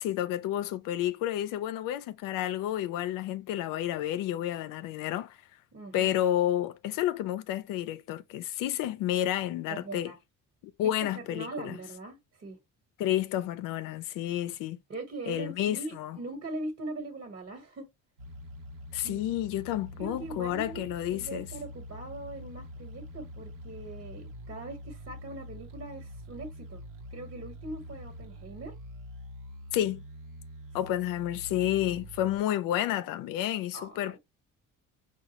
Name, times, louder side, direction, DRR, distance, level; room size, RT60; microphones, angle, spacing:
voice 1, 0.0-5.4 5.9-10.1 10.6-11.8 13.0-14.8 15.3-16.2 18.9-21.5 29.7-30.0 30.7-34.2, left 12 dB, 85° left, 0.5 m, -30 dB
voice 2, 5.7-6.1 9.7-10.2 10.8-12.6 14.9-17.9 19.0-19.3 19.9-20.8 21.1-26.8 27.1-28.7 33.7-34.0, right 2 dB, 40° right, 1.4 m, -41 dB
sound 1, 18.2-32.4, left 1 dB, 85° right, 1.0 m, -45 dB
4.7 x 2.4 x 2.9 m
cardioid pair, 105°, 32 cm